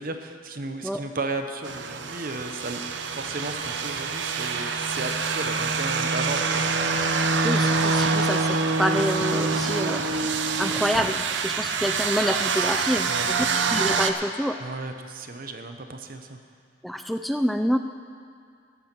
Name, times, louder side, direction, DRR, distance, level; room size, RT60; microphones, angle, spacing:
voice 1, 0.0-2.8 3.1-6.6 13.1-13.6 14.6-16.4, right 3 dB, 55° right, 7 dB, 0.9 m, -34 dB
sound 1, 1.6-14.1, right 4 dB, 90° right, 0.8 m, -25 dB
voice 2, 7.4-10.0 10.6-13.1 13.7-14.6 16.8-17.8, equal, ahead, 7 dB, 0.3 m, -27 dB
13.5 x 10.0 x 6.1 m, 2.3 s
head